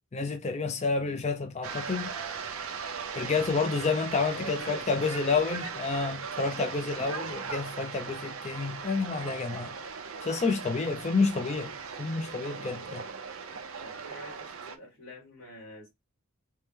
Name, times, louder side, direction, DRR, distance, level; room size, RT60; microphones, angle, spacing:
voice 1, 0.1-2.1 3.2-9.7 10.2-11.7 12.0-13.0, left 4 dB, 30° left, 0.5 m, -29 dB
sound 1, 1.6-14.8, right 5 dB, 80° right, 0.6 m, -38 dB
voice 2, 3.1-3.4 4.3-5.6 13.8-15.9, equal, 65° left, 2.5 m, -45 dB
4.5 x 2.1 x 3.3 m
head